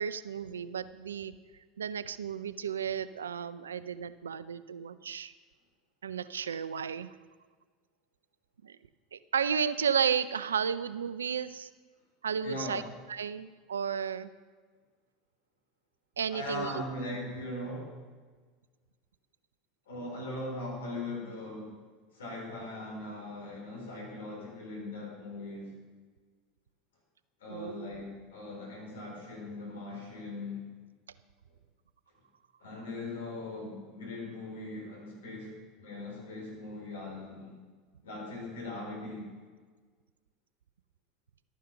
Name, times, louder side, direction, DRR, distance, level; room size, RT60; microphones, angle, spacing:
voice 1, 0.0-1.3 1.8-5.3 6.0-7.1 8.6-8.8 9.1-11.7 12.2-12.8 13.1-14.3 16.2-16.7 27.5-27.9, right 7 dB, 85° right, 15 dB, 0.4 m, -33 dB
voice 2, 12.4-12.8 16.3-17.9 19.9-21.7 22.1-25.8 27.4-30.6 32.6-35.5 35.8-37.5 38.0-39.3, left 2 dB, 80° left, -1 dB, 4.3 m, -40 dB
12.5 x 9.3 x 5.8 m, 1.5 s
hypercardioid pair, 80°, 0 cm